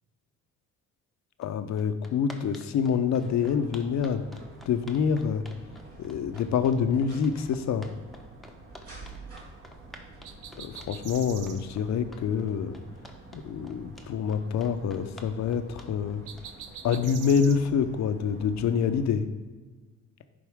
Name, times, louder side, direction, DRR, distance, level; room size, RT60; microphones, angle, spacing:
voice 1, 1.4-4.2 4.7-5.4 6.0-7.9 10.6-12.7 13.3-16.2 16.8-19.2, left 7 dB, 65° left, 9 dB, 0.7 m, -26 dB
sound 1, 1.4-1.5 1.8-17.3, left 1 dB, ahead, 0.9 m, -50 dB
sound 2, 3.2-19.1, right 2 dB, 50° right, 2.1 m, -49 dB
sound 3, 10.2-11.6 16.3-17.6, right 8 dB, 90° right, 0.6 m, -43 dB
11.0 x 4.3 x 3.5 m, 1.4 s
cardioid pair, 90°, 30 cm